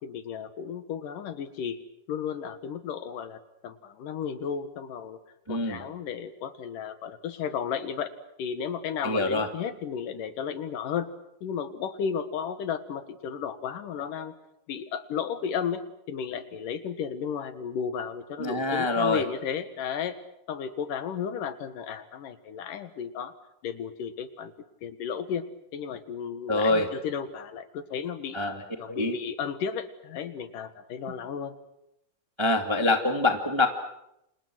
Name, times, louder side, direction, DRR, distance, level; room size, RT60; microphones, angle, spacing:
voice 1, 0.0-1.8 2.1-5.2 5.5-8.1 8.4-11.1 11.4-14.3 14.7-20.2 20.5-23.3 23.6-24.5 24.8-25.4 25.7-28.4 28.8-31.6, left 7 dB, 75° left, 11 dB, 3.1 m, -33 dB
voice 2, 5.5-5.8 9.0-9.5 18.4-19.2 26.5-26.9 28.3-28.5 28.9-29.1 32.4-33.7, left 2 dB, 10° right, 5 dB, 1.4 m, -25 dB
29.5 x 27.5 x 6.2 m, 0.82 s
omnidirectional pair, 3.9 m